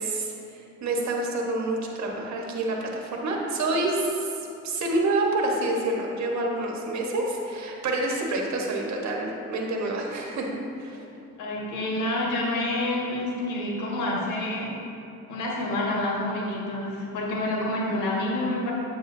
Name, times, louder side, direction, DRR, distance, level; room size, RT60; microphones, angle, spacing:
voice 1, 0.0-4.3 4.6-10.5 10.8-11.0, right 2 dB, 65° right, 0 dB, 1.3 m, -28 dB
voice 2, 11.4-14.7 15.3-18.7, left 1 dB, 90° left, -3 dB, 1.5 m, -28 dB
8.6 x 7.6 x 2.7 m, 2.8 s
cardioid pair, 90°, 30 cm